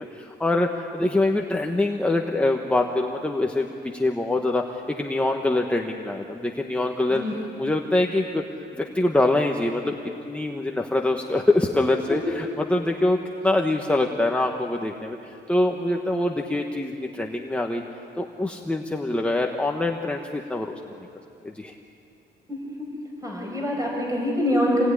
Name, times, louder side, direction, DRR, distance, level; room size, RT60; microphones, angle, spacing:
voice 1, 0.0-8.4 8.7-10.0 10.3-17.8 18.2-20.7 21.4-21.7, left 2 dB, 5° left, 1 dB, 1.3 m, -24 dB
voice 2, 22.5-22.9 23.2-24.9, equal, 15° right, -1 dB, 5.8 m, -25 dB
27.5 x 19.5 x 9.9 m, 2.7 s
cardioid pair, 130°, 19 cm